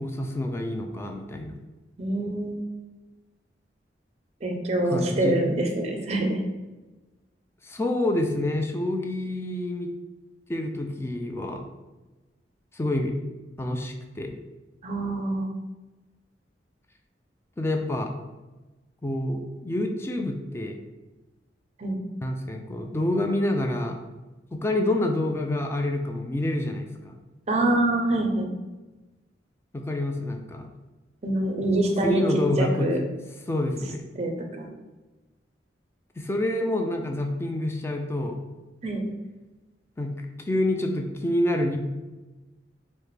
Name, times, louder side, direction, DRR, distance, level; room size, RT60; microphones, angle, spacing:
voice 1, 0.0-1.6 4.9-5.4 7.6-9.9 10.5-11.6 12.7-13.2 13.6-14.4 17.6-18.1 19.0-20.8 22.2-24.0 24.5-27.1 29.7-30.7 32.0-32.9 33.5-34.0 36.2-38.4 40.0-40.2 40.5-41.8, left 1 dB, 15° left, 3 dB, 0.3 m, -27 dB
voice 2, 2.0-2.6 4.4-6.4 14.8-15.5 21.8-22.0 27.5-28.5 31.2-33.0 34.2-34.7 38.8-39.0, right 1 dB, 35° right, 3 dB, 0.5 m, -25 dB
4.7 x 2.1 x 3.3 m, 1.1 s
head